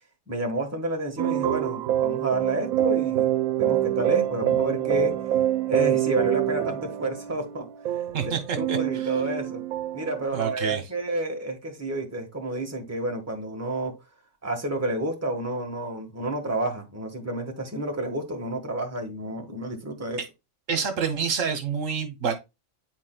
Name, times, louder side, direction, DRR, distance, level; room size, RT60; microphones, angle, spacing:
voice 1, 0.3-3.3 3.6-5.1 5.7-7.7 8.2-9.6 9.9-13.9 14.4-20.2, right 1 dB, 10° right, 1.3 m, -30 dB
sound 1, 1.2-10.3, right 12 dB, 90° right, 1.0 m, -26 dB
voice 2, 8.1-9.1 10.3-10.8 20.7-22.3, right 6 dB, 70° right, 1.3 m, -28 dB
9.6 x 4.4 x 2.3 m
omnidirectional pair, 1.4 m